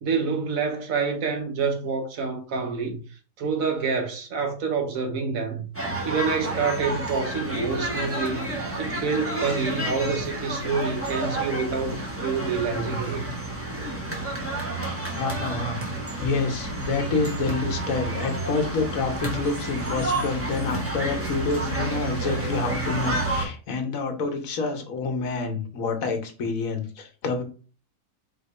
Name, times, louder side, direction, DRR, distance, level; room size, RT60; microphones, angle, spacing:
voice 1, 0.0-3.0 3.4-5.6 6.0-8.5 8.8-13.3, right 5 dB, 80° right, 1.4 m, -27 dB
sound 1, 5.7-23.5, right 2 dB, 10° right, 1.0 m, -30 dB
voice 2, 15.2-15.8 16.2-27.4, left 4 dB, 75° left, 1.4 m, -28 dB
4.3 x 3.0 x 4.1 m
omnidirectional pair, 1.5 m